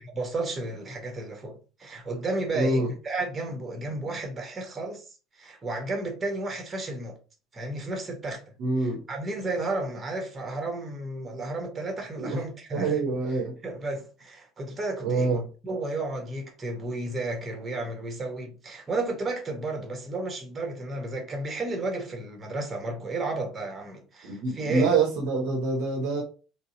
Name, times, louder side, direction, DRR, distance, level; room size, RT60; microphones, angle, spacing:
voice 1, 0.0-5.0 5.4-7.2 7.5-8.5 9.1-12.9 13.6-15.3 15.6-24.9, right 2 dB, 25° right, 1.2 m, -32 dB
voice 2, 2.5-2.9 8.6-9.0 12.2-12.4 12.7-13.6 15.0-15.5 24.2-26.2, right 3 dB, 55° right, 1.0 m, -26 dB
4.1 x 2.2 x 3.8 m
figure-of-eight pair, 60°, 0 cm